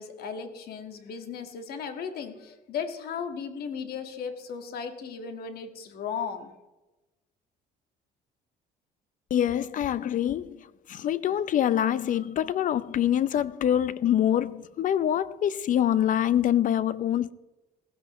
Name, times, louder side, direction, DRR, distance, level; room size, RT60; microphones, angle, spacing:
voice 1, 0.0-6.5, left 6 dB, 65° left, 1.8 m, -36 dB
voice 2, 9.3-17.3, left 10 dB, 50° left, 0.6 m, -25 dB
17.0 x 15.5 x 3.1 m
cardioid pair, 110°, 17 cm